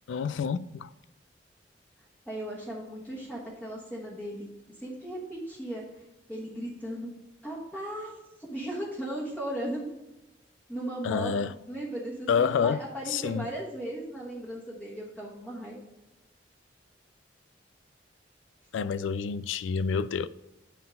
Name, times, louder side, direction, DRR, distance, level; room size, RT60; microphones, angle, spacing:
voice 1, 0.1-0.9 11.0-11.5 12.3-12.8 13.1-13.5 18.7-20.3, left 6 dB, 85° left, 0.3 m, -28 dB
voice 2, 2.3-4.5 4.8-5.8 6.3-7.1 7.4-9.9 10.7-15.8, right 1 dB, 10° left, 1.2 m, -37 dB
8.0 x 3.8 x 5.3 m
head